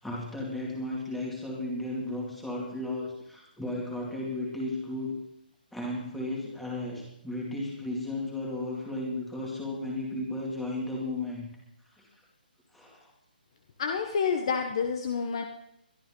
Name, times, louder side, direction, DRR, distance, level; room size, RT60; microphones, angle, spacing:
voice 1, 0.0-5.2 5.7-11.5 11.9-12.1 12.7-13.1, left 2 dB, ahead, -3 dB, 2.4 m, -34 dB
voice 2, 13.8-15.4, left 6 dB, 30° left, 5 dB, 1.1 m, -28 dB
22.5 x 12.0 x 3.8 m, 0.82 s
hypercardioid pair, 175°, 5 cm